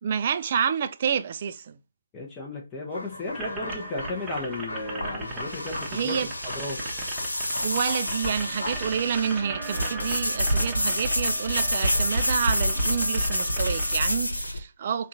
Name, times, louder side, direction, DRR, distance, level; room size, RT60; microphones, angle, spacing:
voice 1, 0.0-1.8 5.9-6.3 7.6-15.1, right 7 dB, 35° right, 0.4 m, -28 dB
voice 2, 2.1-6.1 6.5-6.8, left 2 dB, 15° left, 0.7 m, -34 dB
sound 1, 2.9-11.6, left 2 dB, 65° left, 1.4 m, -40 dB
sound 2, 3.3-13.9, right 2 dB, 10° right, 0.9 m, -38 dB
sound 3, 4.2-14.6, left 1 dB, 85° left, 1.0 m, -28 dB
3.5 x 2.4 x 4.0 m
figure-of-eight pair, 150°, 0 cm